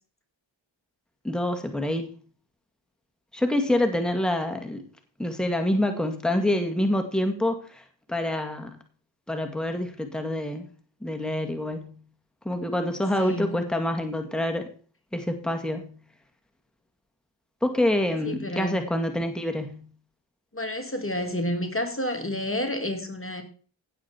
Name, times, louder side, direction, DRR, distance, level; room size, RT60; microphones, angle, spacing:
voice 1, 1.2-2.1 3.3-4.8 5.2-8.8 9.3-10.7 11.0-11.9 12.5-14.7 15.1-15.9 17.6-19.9, left 1 dB, ahead, 2.1 m, -26 dB
voice 2, 13.2-13.6 18.2-18.9 20.5-23.4, left 1 dB, 25° left, 2.3 m, -30 dB
16.5 x 7.5 x 4.5 m
wide cardioid pair, 65°, 47 cm